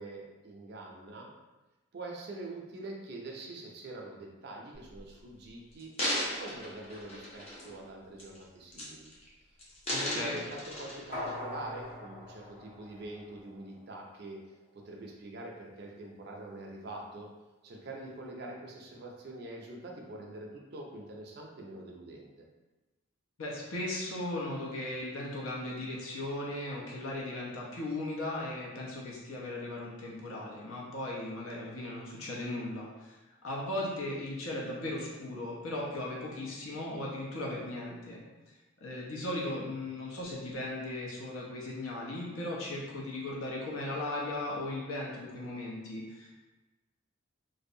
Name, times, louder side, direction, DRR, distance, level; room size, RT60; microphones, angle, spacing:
voice 1, 0.0-1.3 1.9-5.9 6.3-9.1 10.0-14.4 14.8-17.3 17.6-22.5, right 2 dB, 50° right, 0 dB, 0.4 m, -44 dB
sound 1, 4.9-5.1 5.7-7.8 8.2-8.4 8.7-9.3 9.6-11.3 11.9-12.0, equal, 30° left, 0.5 m, -36 dB
voice 2, 9.9-10.4 23.4-33.2 33.4-38.2 38.8-46.3, left 1 dB, 85° left, -3 dB, 0.7 m, -37 dB
sound 2, 11.1-13.7 14.0-14.1, left 1 dB, 45° left, 1.5 m, -42 dB
2.6 x 2.0 x 2.6 m, 1.1 s
head